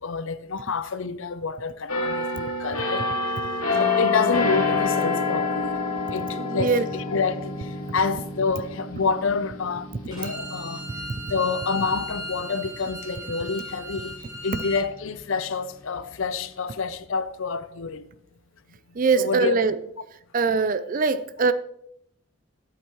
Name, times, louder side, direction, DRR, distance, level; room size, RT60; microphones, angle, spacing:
voice 1, 0.0-3.1 3.8-5.8 6.1-10.8 11.3-18.1 19.2-19.6, left 4 dB, 65° left, 0.6 m, -28 dB
sound 1, 1.9-13.4 13.9-14.1, left 3 dB, 80° left, 2.3 m, -28 dB
voice 2, 6.4-6.8 18.9-19.8 20.3-21.5, right 4 dB, 40° right, 0.4 m, -22 dB
Bowed string instrument, 10.1-14.8, equal, 20° right, 4.5 m, -37 dB
13.0 x 8.1 x 3.1 m
head